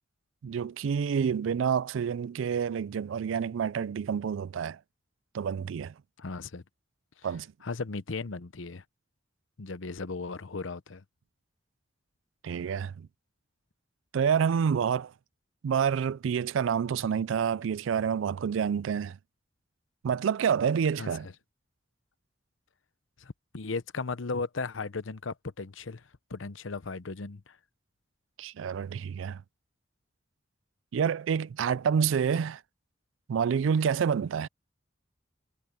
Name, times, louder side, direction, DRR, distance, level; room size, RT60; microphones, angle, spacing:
voice 1, 0.4-4.8 5.3-5.9 7.2-7.5 12.4-13.1 14.1-15.1 15.6-19.2 20.0-21.3 28.4-29.4 30.9-32.6 33.3-34.5, right 7 dB, 80° right, 0.4 m, -28 dB
voice 2, 6.2-6.6 7.6-8.8 9.6-11.0 21.0-21.1 23.2-26.0 26.3-27.6, left 4 dB, 90° left, 0.8 m, -36 dB
head